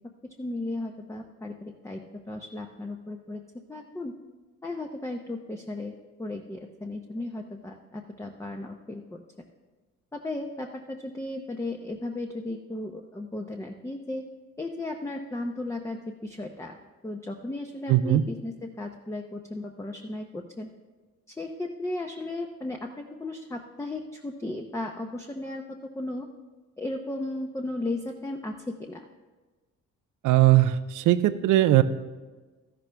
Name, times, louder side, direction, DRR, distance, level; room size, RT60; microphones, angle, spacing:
voice 1, 0.4-2.0 2.3-3.4 3.7-4.1 4.6-9.2 10.1-14.2 14.6-16.7 17.0-20.7 21.3-26.3 26.8-29.0, left 2 dB, 10° left, 2 dB, 0.8 m, -35 dB
voice 2, 17.9-18.2 30.2-31.8, right 14 dB, 85° right, 13 dB, 0.6 m, -20 dB
13.0 x 11.5 x 3.4 m, 1.3 s
cardioid pair, 90°, 30 cm